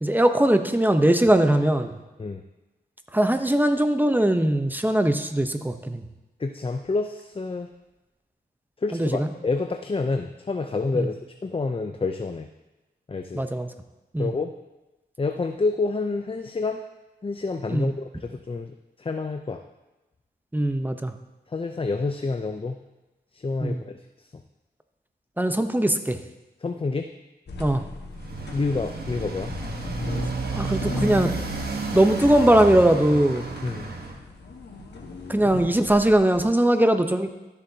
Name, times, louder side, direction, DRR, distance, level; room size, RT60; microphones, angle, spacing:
voice 1, 0.0-1.9 3.1-6.0 8.9-9.3 10.9-11.1 13.3-13.7 14.1-14.3 17.7-17.9 20.5-21.1 23.6-23.8 25.4-26.2 27.6-27.8 30.5-31.3 31.9-33.4 35.3-37.3, right 1 dB, 10° right, 7 dB, 0.8 m, -20 dB
voice 2, 6.4-7.7 8.8-11.1 11.4-12.5 13.1-13.4 14.2-14.5 15.2-16.8 17.2-19.6 21.5-22.8 23.3-24.3 26.6-27.1 28.5-29.5 33.6-33.9, left 3 dB, 30° left, 6 dB, 0.6 m, -28 dB
sound 1, 27.5-36.4, left 3 dB, 75° left, 1.5 m, -38 dB
Motorcycle, 28.1-34.1, right 3 dB, 65° right, 1.3 m, -31 dB
13.5 x 6.8 x 2.8 m, 1.0 s
cardioid pair, 50°, 18 cm